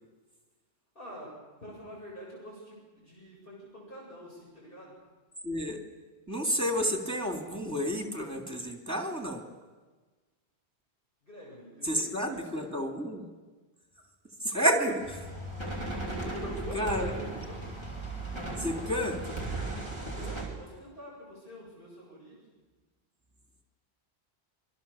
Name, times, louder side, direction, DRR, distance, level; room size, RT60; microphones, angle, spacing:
voice 1, 0.9-4.9 11.2-12.8 16.1-17.7 20.1-22.4, equal, 55° left, -4 dB, 8.2 m, -46 dB
voice 2, 5.4-5.8 6.3-9.4 11.8-13.2 14.4-15.2 16.7-17.3 18.6-19.2, equal, 15° right, 3 dB, 3.1 m, -30 dB
sound 1, 15.0-20.4, right 2 dB, 25° left, 5.0 m, -36 dB
27.0 x 23.5 x 7.3 m, 1.3 s
omnidirectional pair, 1.1 m